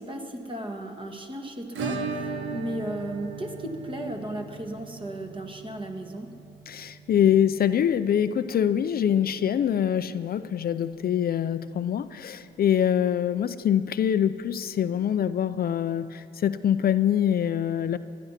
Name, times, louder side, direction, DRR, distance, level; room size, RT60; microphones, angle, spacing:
voice 1, 0.0-6.3, right 1 dB, 25° right, 3 dB, 1.9 m, -35 dB
Acoustic guitar / Strum, 1.7-10.4 10.6-10.7 11.0-11.1 11.5-11.6 13.6-13.7 14.8-14.9, right 4 dB, 75° right, 1.5 m, -38 dB
voice 2, 6.7-18.0, left 9 dB, 50° left, 12 dB, 0.5 m, -24 dB
19.5 x 11.5 x 5.8 m, 2.5 s
cardioid pair, 90°, 20 cm